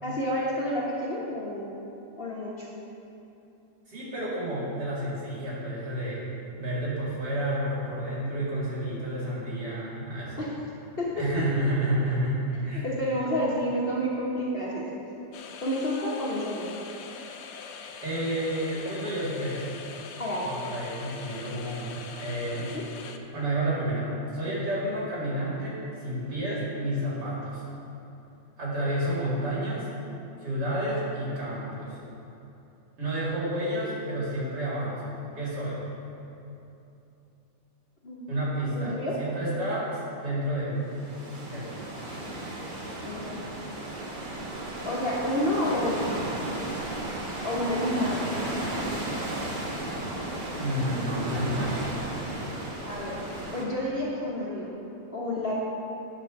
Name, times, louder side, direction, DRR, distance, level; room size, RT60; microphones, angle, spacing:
voice 1, 0.0-1.7 2.2-2.7 10.4-10.5 11.0-11.1 12.7-14.8 15.6-16.7 20.2-20.5 38.0-38.3 38.7-39.1 43.0-43.4 44.8-46.2 47.4-48.2 52.8-53.1 53.5-54.7 55.1-55.5, left 1 dB, 40° left, -5 dB, 1.1 m, -29 dB
voice 2, 3.9-6.2 6.6-10.5 11.2-12.9 18.0-19.6 20.4-22.7 23.3-27.6 28.6-29.9 30.4-32.0 33.0-35.7 38.3-40.8 41.4-41.8 50.6-51.7, right 1 dB, 80° right, -7 dB, 3.1 m, -30 dB
sound 1, 15.3-23.2, left 6 dB, 70° left, 0.6 m, -43 dB
sound 2, 40.8-53.6, right 1 dB, 35° right, 1.1 m, -34 dB
10.5 x 4.3 x 6.4 m, 2.9 s
omnidirectional pair, 1.7 m